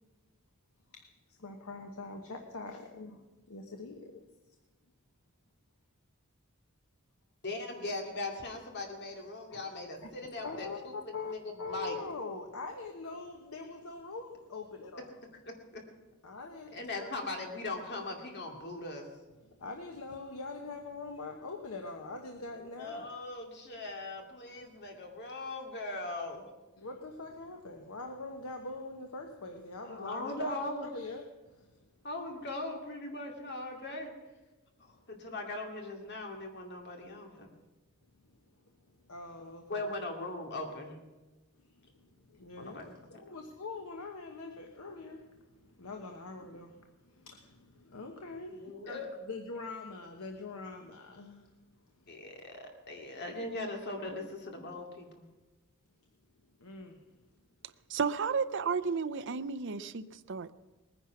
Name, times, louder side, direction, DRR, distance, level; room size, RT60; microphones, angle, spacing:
voice 1, 0.9-4.3 9.5-9.6 10.0-15.3 16.2-17.1 19.5-23.1 26.8-30.6 30.9-31.9 34.9-35.0 38.2-38.4 38.8-39.9 41.6-51.6 51.9-52.1 56.6-57.1, left 3 dB, 90° left, 4 dB, 1.1 m, -44 dB
voice 2, 7.4-10.9 11.3-12.0 15.7-15.8 16.7-19.1 22.6-26.5 29.8-30.9 32.0-34.1 34.8-37.5 39.7-41.0 42.6-43.2 48.5-49.1 52.1-55.2, left 2 dB, 50° left, 3 dB, 2.4 m, -40 dB
voice 3, 57.9-60.5, right 5 dB, 60° right, 13 dB, 0.6 m, -32 dB
20.0 x 10.0 x 5.9 m, 1.2 s
head